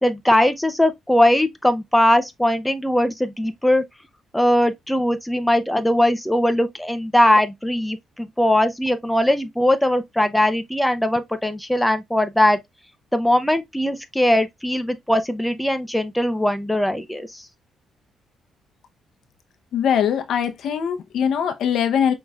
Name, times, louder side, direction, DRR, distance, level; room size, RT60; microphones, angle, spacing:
voice 1, 0.0-3.8 4.3-12.6 13.1-17.5, left 1 dB, 5° left, 0.6 m, -20 dB
voice 2, 19.7-22.1, left 8 dB, 70° left, 0.7 m, -21 dB
5.3 x 3.0 x 2.3 m
cardioid pair, 90°, 0 cm